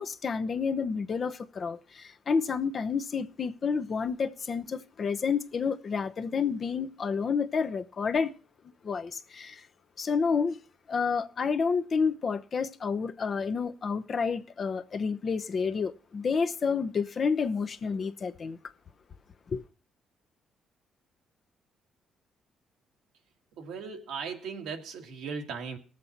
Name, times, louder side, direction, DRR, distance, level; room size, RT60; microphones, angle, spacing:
voice 1, 0.0-8.3 8.8-9.6 10.0-10.6 10.9-18.6 19.5-19.6, left 5 dB, 45° left, 0.9 m, -29 dB
voice 2, 23.6-25.8, right 5 dB, 85° right, 2.0 m, -37 dB
18.5 x 7.6 x 4.1 m
cardioid pair, 90°, 0 cm